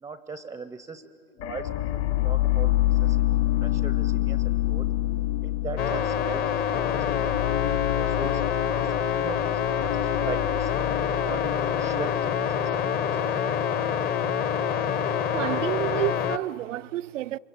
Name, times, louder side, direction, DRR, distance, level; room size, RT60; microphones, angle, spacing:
voice 1, 0.0-1.1 1.5-4.9 5.4-8.4 8.8-10.7 11.1-13.2, right 4 dB, 10° right, 0.6 m, -40 dB
sound 1, 1.4-13.3, left 15 dB, 55° left, 2.4 m, -28 dB
sound 2, 5.8-16.4, left 8 dB, 25° left, 0.8 m, -26 dB
voice 2, 15.3-17.4, right 15 dB, 70° right, 0.6 m, -29 dB
28.5 x 24.0 x 8.6 m
hypercardioid pair, 125°, 39 cm